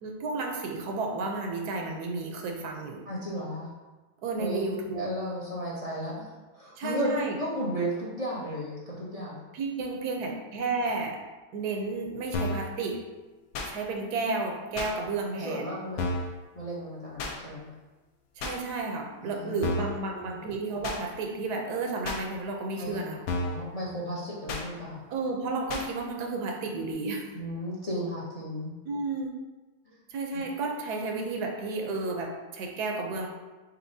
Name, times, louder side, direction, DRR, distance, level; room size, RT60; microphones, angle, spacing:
voice 1, 0.0-3.1 4.2-5.1 6.8-7.4 9.5-11.2 11.5-13.0 13.6-15.6 18.4-23.2 25.1-27.3 28.9-29.3 30.1-33.3, right 3 dB, 85° right, 1 dB, 1.2 m, -32 dB
voice 2, 3.1-3.7 4.4-4.6 4.9-9.5 15.3-16.2 16.5-17.7 19.2-20.3 22.7-23.0 23.3-25.0 27.3-28.7 29.9-30.0, equal, 35° left, -6 dB, 0.6 m, -34 dB
sound 1, 12.3-12.7 13.5-13.7 14.8-14.9 16.0-16.3 17.2-17.4 18.4-18.6 19.6-20.0 20.8-21.0 22.0-22.2 23.3-23.6 24.5-24.7 25.7-25.9, left 2 dB, 80° left, 1.1 m, -31 dB
4.3 x 3.9 x 2.7 m, 1.2 s
omnidirectional pair, 1.7 m